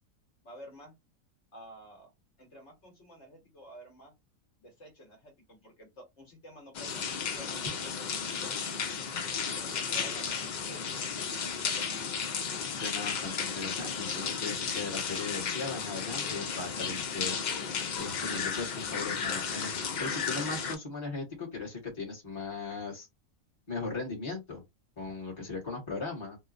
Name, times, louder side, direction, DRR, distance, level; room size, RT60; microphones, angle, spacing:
voice 1, 0.4-0.9 1.5-2.1 2.4-4.1 4.6-8.7 9.3-11.8, equal, 60° left, 1.4 m, -51 dB
sound 1, 6.7-20.8, left 6 dB, 90° left, 0.4 m, -34 dB
voice 2, 12.7-17.4 18.0-23.1 23.7-24.6 25.0-26.4, left 3 dB, 20° left, 1.2 m, -38 dB
3.0 x 2.1 x 2.5 m
omnidirectional pair, 1.4 m